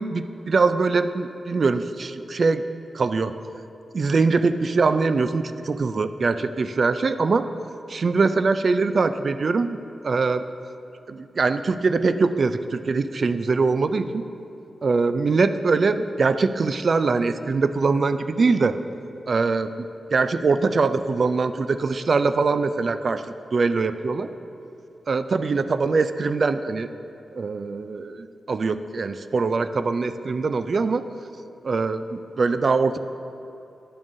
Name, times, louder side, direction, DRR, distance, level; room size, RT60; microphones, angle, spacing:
voice 1, 0.0-2.6 2.9-3.3 3.9-7.5 7.9-9.8 10.0-10.4 11.1-14.2 14.8-18.8 19.3-23.2 23.5-24.3 25.1-26.9 27.3-31.0 31.6-33.0, right 4 dB, 60° right, 11 dB, 0.3 m, -22 dB
10.5 x 7.2 x 2.6 m, 2.7 s
supercardioid pair, 45°, 0 cm